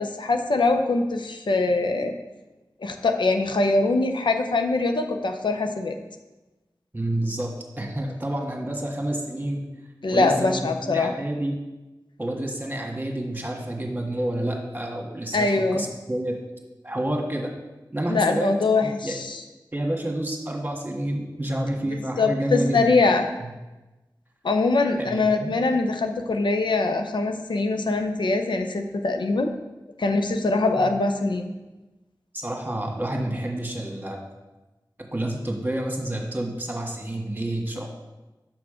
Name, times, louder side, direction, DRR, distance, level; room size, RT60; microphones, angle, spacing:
voice 1, 0.0-2.1 2.8-6.0 10.0-11.1 15.3-15.9 18.1-19.4 22.2-23.2 24.4-29.5 30.0-31.5, left 3 dB, 85° left, 6 dB, 0.6 m, -23 dB
voice 2, 6.9-9.6 10.1-11.5 12.2-16.4 16.8-17.5 17.9-18.5 18.8-19.2 19.7-23.1 25.0-25.6 32.3-34.2 35.1-37.9, right 1 dB, 25° right, 1 dB, 1.5 m, -29 dB
6.1 x 6.0 x 4.9 m, 1.1 s
cardioid pair, 45°, 8 cm